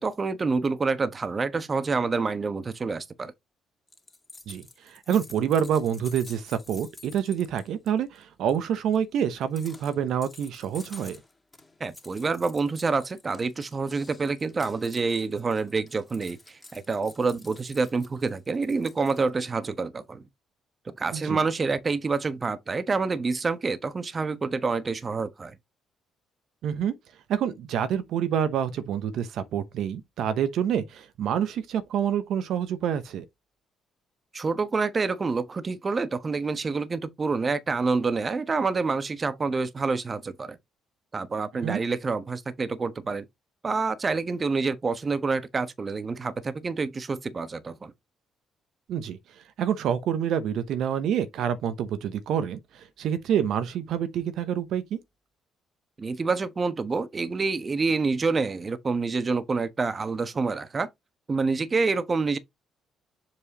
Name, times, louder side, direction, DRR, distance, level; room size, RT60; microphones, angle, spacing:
voice 1, 0.0-3.3 11.8-20.2 20.9-25.6 34.3-40.6 41.1-43.2 43.6-47.9 56.0-60.9 61.3-62.4, right 4 dB, 35° right, 1.2 m, -27 dB
sound 1, 3.9-7.9 8.1-8.2 8.5-19.3, left 2 dB, 20° left, 2.2 m, -50 dB
voice 2, 4.5-11.2 21.1-21.4 26.6-26.9 27.3-33.2 41.5-41.8 48.9-55.0, right 9 dB, 70° right, 0.9 m, -27 dB
7.2 x 4.7 x 3.0 m
hypercardioid pair, 50°, 0 cm